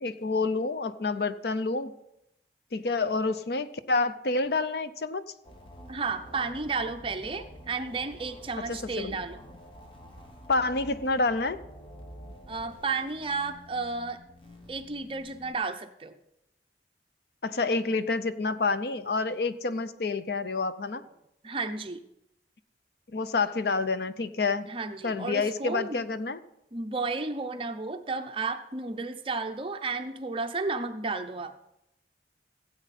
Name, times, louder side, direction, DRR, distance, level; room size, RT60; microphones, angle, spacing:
voice 1, 0.0-1.9 2.7-5.2 8.7-9.2 10.5-11.6 17.4-21.0 23.1-24.7 25.0-26.4, left 3 dB, 65° left, 13 dB, 0.6 m, -28 dB
sound 1, 5.4-15.5, equal, 30° left, 1.2 m, -48 dB
voice 2, 5.9-9.4 12.5-14.2 14.7-16.2 21.0-21.1 21.4-22.0 24.7-26.0 26.7-31.6, right 4 dB, 30° right, 7 dB, 0.6 m, -33 dB
16.0 x 8.2 x 4.2 m, 0.84 s
head